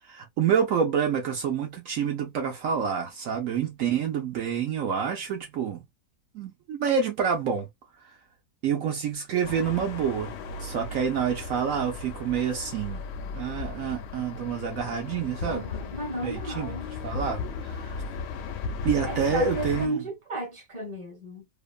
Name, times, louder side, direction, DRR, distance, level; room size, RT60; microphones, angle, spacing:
voice 1, 0.0-5.8 6.3-7.7 8.0-8.2 8.6-10.3 10.6-15.7 16.2-16.7 17.0-18.0 18.8-20.0, right 7 dB, 70° right, 1.0 m, -28 dB
sound 1, 9.4-19.9, left 4 dB, 65° left, 0.7 m, -36 dB
voice 2, 15.5-16.9 19.0-21.5, right 2 dB, 20° right, 1.1 m, -34 dB
2.9 x 2.2 x 2.3 m
omnidirectional pair, 1.6 m